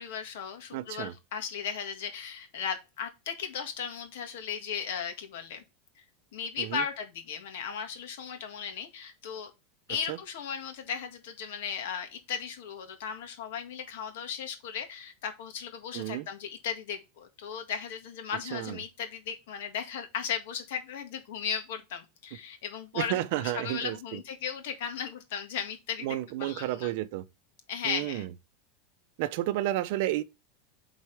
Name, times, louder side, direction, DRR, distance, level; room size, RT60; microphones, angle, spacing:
voice 1, 0.0-5.6 6.0-6.1 6.3-9.5 9.9-26.1 26.4-26.9 27.7-28.3, left 7 dB, 65° left, 1.8 m, -36 dB
voice 2, 0.7-1.1 6.6-6.8 10.1-10.2 15.9-16.3 18.5-18.8 23.0-24.2 26.0-27.3 27.8-28.3 29.2-30.2, right 14 dB, 55° right, 0.6 m, -31 dB
8.2 x 4.1 x 3.4 m
supercardioid pair, 170°, 0 cm